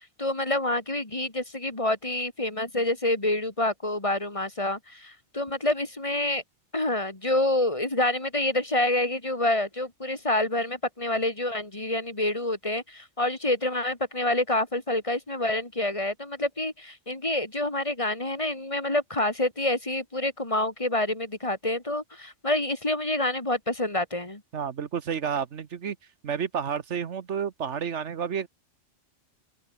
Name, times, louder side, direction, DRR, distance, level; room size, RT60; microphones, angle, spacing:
voice 1, 0.2-6.4 6.7-24.4, left 1 dB, 25° left, 2.4 m, -27 dB
voice 2, 24.5-26.0 26.2-28.5, right 7 dB, 70° right, 1.4 m, -30 dB
open air
omnidirectional pair, 1.2 m